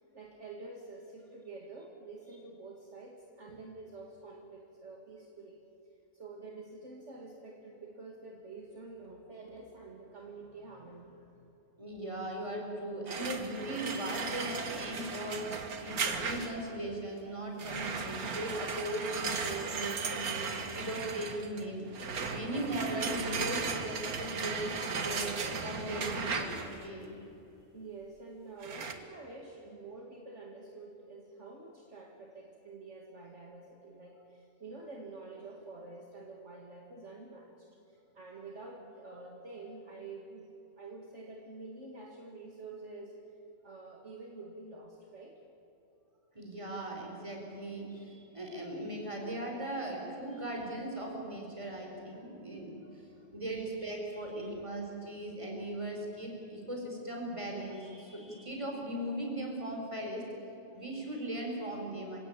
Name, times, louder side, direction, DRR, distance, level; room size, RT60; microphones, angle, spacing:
voice 1, 0.0-5.6 6.1-11.5 27.7-43.2 43.6-45.4 52.9-53.3 53.8-54.5, right 3 dB, 55° right, 0 dB, 2.4 m, -48 dB
voice 2, 11.8-21.8 22.3-27.1 46.3-53.1 53.3-60.2 60.7-62.2, right 1 dB, 20° right, 0 dB, 5.0 m, -38 dB
sound 1, 13.1-16.7 17.6-26.9 28.6-28.9, right 5 dB, 85° right, 2.0 m, -36 dB
27.5 x 17.0 x 8.9 m, 2.8 s
omnidirectional pair, 1.5 m